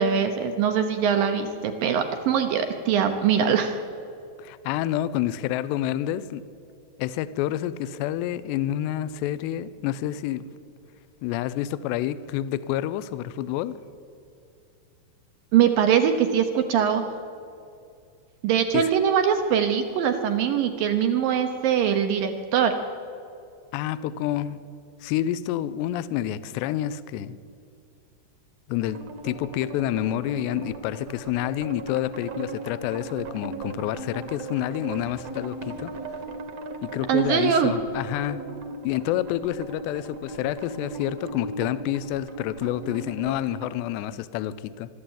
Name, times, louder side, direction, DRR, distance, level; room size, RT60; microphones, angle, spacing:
voice 1, 0.0-3.8 15.5-17.1 18.4-22.8 37.1-37.7, right 8 dB, 70° right, 6 dB, 2.2 m, -22 dB
voice 2, 4.4-6.4 7.0-10.5 11.2-13.8 18.7-18.9 23.7-24.6 25.0-27.4 28.7-35.9 36.8-38.5 38.8-44.9, left 12 dB, 80° left, 15 dB, 2.8 m, -28 dB
sound 1, 28.8-43.7, right 3 dB, 55° right, 1.9 m, -38 dB
23.5 x 12.5 x 8.9 m, 2.5 s
omnidirectional pair, 5.1 m